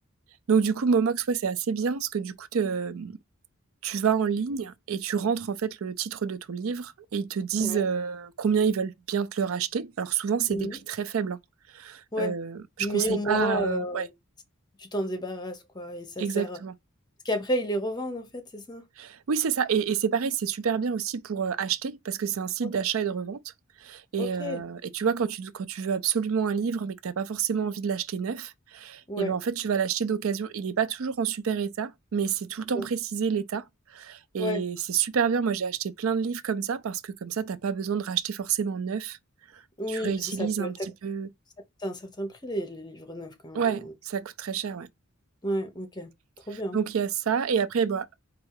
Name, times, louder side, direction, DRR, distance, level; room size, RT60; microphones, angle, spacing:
voice 1, 0.5-3.2 3.8-11.4 11.7-14.1 16.2-16.7 19.0-23.4 23.8-33.6 33.9-39.2 39.9-41.3 43.5-44.9 46.7-48.1, right 6 dB, 85° right, 0.5 m, -28 dB
voice 2, 10.5-10.8 12.1-12.3 12.8-14.1 14.8-16.6 17.2-18.8 24.2-24.6 29.1-29.4 32.7-32.9 34.4-34.6 39.8-40.7 41.8-43.9 45.4-46.1 46.5-46.8, equal, 20° left, 0.9 m, -32 dB
4.3 x 2.5 x 4.7 m
head